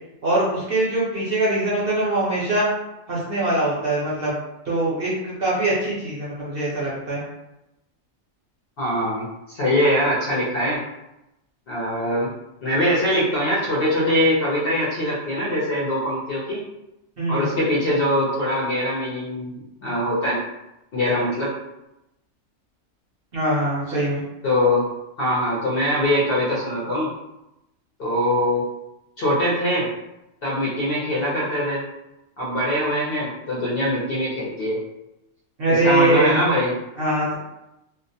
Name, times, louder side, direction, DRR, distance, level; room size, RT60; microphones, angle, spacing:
voice 1, 0.2-2.7 3.1-4.4 4.7-7.2 17.2-17.5 23.3-24.2 35.6-36.4 37.0-37.4, right 1 dB, 55° right, -7 dB, 0.8 m, -22 dB
voice 2, 8.8-10.8 11.7-12.3 12.6-16.6 17.3-20.4 20.9-21.5 23.9-24.0 24.4-24.8 25.2-27.1 28.0-28.6 29.2-29.9 30.4-31.8 32.4-34.8 35.7-36.7, equal, 55° left, -7 dB, 0.7 m, -22 dB
2.4 x 2.0 x 2.6 m, 0.90 s
omnidirectional pair, 1.4 m